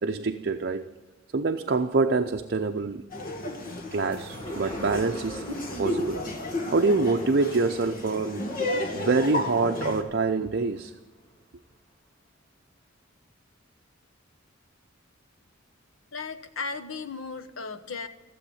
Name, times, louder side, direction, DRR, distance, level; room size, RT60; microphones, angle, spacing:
voice 1, 0.0-0.8 1.3-3.0 3.9-5.5 5.8-6.2 6.7-8.5 8.9-10.9, right 3 dB, 55° right, 0.6 m, -25 dB
Laughter, 3.1-10.0, left 1 dB, 45° left, 2.0 m, -32 dB
sound 1, 4.1-10.9 11.3-11.4, right 1 dB, 25° left, 3.4 m, -45 dB
voice 2, 16.1-18.1, left 4 dB, 80° left, 1.1 m, -35 dB
15.0 x 7.8 x 10.0 m
head